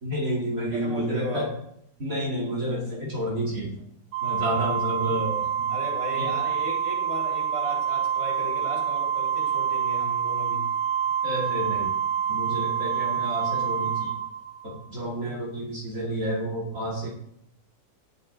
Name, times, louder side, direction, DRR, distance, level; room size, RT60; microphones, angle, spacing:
voice 1, 0.0-1.5 2.0-3.8 4.2-5.7 6.2-6.4 11.2-11.9 12.3-14.1 14.6-17.1, right 1 dB, 50° right, -5 dB, 2.8 m, -30 dB
voice 2, 0.7-1.5 5.7-10.7, equal, 15° right, -4 dB, 3.4 m, -36 dB
Organ, 4.1-14.9, right 8 dB, 85° right, 1.4 m, -27 dB
18.0 x 6.9 x 4.0 m, 0.73 s
omnidirectional pair, 1.9 m